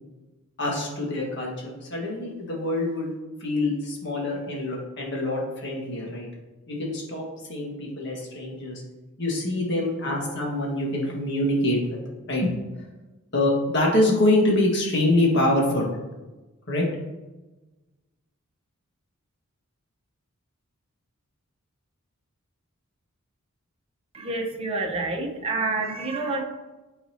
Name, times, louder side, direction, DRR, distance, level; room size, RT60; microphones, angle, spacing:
voice 1, 0.6-3.1 3.4-6.3 6.7-8.8 9.2-12.0 12.3-12.5 13.3-16.0 16.7-16.8, left 1 dB, 50° left, -2 dB, 1.7 m, -25 dB
voice 2, 24.1-26.4, right 3 dB, 25° right, 1 dB, 1.0 m, -28 dB
9.9 x 4.1 x 2.8 m, 1.1 s
head